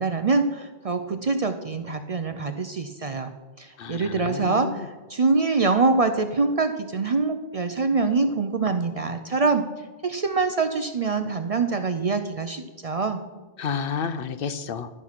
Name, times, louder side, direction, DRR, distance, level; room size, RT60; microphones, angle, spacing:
voice 1, 0.0-3.3 3.6-9.6 10.0-13.2, right 4 dB, 45° right, 8 dB, 0.5 m, -24 dB
voice 2, 3.8-4.9 13.6-14.9, left 6 dB, 65° left, 11 dB, 0.8 m, -31 dB
12.0 x 5.9 x 5.8 m, 1.3 s
omnidirectional pair, 1.0 m